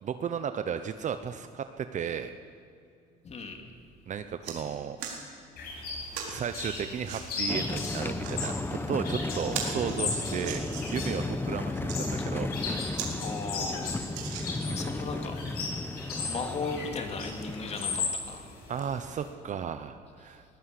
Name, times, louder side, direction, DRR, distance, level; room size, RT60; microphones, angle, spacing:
voice 1, 0.0-2.3 4.1-5.0 6.3-13.0 14.7-14.8 18.7-20.4, right 8 dB, 45° right, 9 dB, 0.9 m, -34 dB
voice 2, 3.2-3.6 12.2-12.3 13.2-13.9 14.7-15.4 16.3-18.5, left 4 dB, 40° left, 4 dB, 2.8 m, -36 dB
sound 1, 3.7-3.9 4.2-4.6 5.0-5.2 6.1-6.4 7.0-7.2 8.0-8.5 9.0-9.1 9.4-11.1 11.7-12.0 12.5-12.6 12.9-13.1 13.5-13.6 14.1-14.8 15.5-15.6, right 7 dB, 85° right, 4.0 m, -38 dB
sound 2, 5.6-19.3, left 4 dB, 70° left, 6.7 m, -37 dB
sound 3, 7.5-18.1, left 2 dB, 15° left, 1.0 m, -34 dB
21.0 x 15.5 x 8.4 m, 2.5 s
cardioid pair, 110°, 17 cm